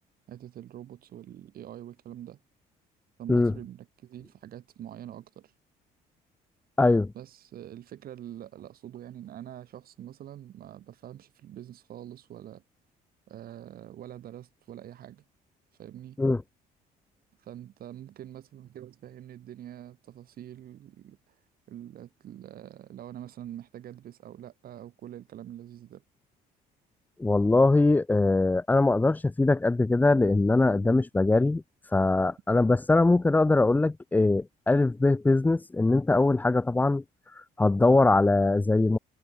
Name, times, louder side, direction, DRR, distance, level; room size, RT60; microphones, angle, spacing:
voice 1, 0.3-2.4 3.2-5.5 7.1-12.6 13.3-15.2 15.8-16.2 17.4-21.3 21.7-26.0, right 11 dB, 60° right, 7.2 m, -44 dB
voice 2, 6.8-7.1 16.2-16.4 27.2-37.0 37.3-39.0, left 2 dB, 10° left, 0.5 m, -22 dB
cardioid pair, 110°, 17 cm